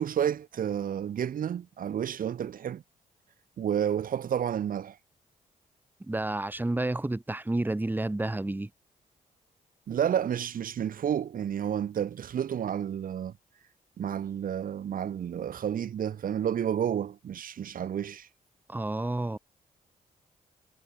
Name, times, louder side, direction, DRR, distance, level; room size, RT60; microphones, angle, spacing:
voice 1, 0.0-2.8 3.6-5.0 9.9-13.3 14.0-18.3, right 9 dB, 70° right, 7.9 m, -30 dB
voice 2, 6.1-8.7 18.7-19.4, right 2 dB, 10° right, 3.7 m, -30 dB
cardioid pair, 105°, 15 cm